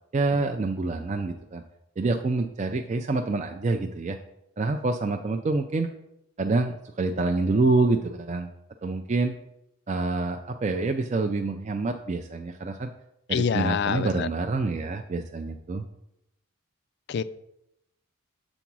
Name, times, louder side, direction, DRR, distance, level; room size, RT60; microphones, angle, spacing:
voice 1, 0.1-1.6 2.0-4.2 4.6-5.9 6.4-8.5 8.8-9.3 9.9-12.9 13.3-15.8, right 3 dB, 30° right, 0.3 m, -27 dB
voice 2, 13.3-14.3 17.1-17.2, left 7 dB, 50° left, 0.3 m, -26 dB
7.1 x 3.9 x 6.0 m
head